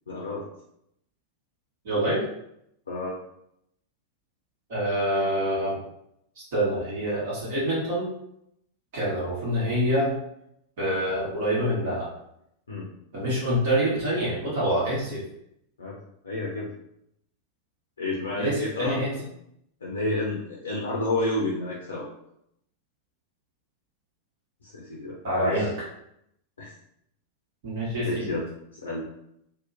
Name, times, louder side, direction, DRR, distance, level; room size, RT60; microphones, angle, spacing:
voice 1, 0.1-0.4 2.9-3.2 12.7-12.9 15.8-16.0 16.2-16.7 18.0-19.3 19.8-22.1 24.6-25.7 26.6-26.7 28.0-28.5 28.7-29.1, left 2 dB, 70° left, -4 dB, 0.5 m, -30 dB
voice 2, 1.8-2.2 4.7-5.8 6.4-8.1 8.9-10.2 10.8-12.1 13.1-15.2 18.3-19.1 25.2-25.7 27.6-28.3, equal, 55° right, -6 dB, 1.1 m, -26 dB
2.8 x 2.1 x 2.5 m, 0.77 s
figure-of-eight pair, 90°, 0 cm